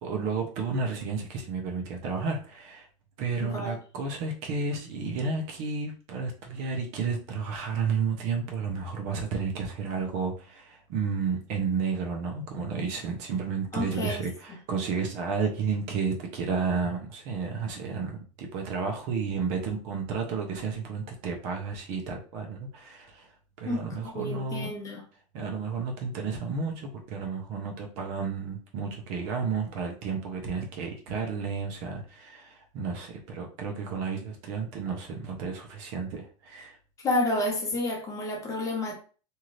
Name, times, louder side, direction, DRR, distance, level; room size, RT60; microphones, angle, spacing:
voice 1, 0.0-2.9 3.2-23.3 23.6-24.7 25.3-36.8, right 5 dB, 50° right, 0.8 m, -32 dB
voice 2, 3.4-3.8 13.7-14.2 23.6-23.9 24.1-25.0 37.0-39.0, left 2 dB, 20° left, 1.0 m, -30 dB
2.7 x 2.5 x 3.1 m
supercardioid pair, 140°, 15 cm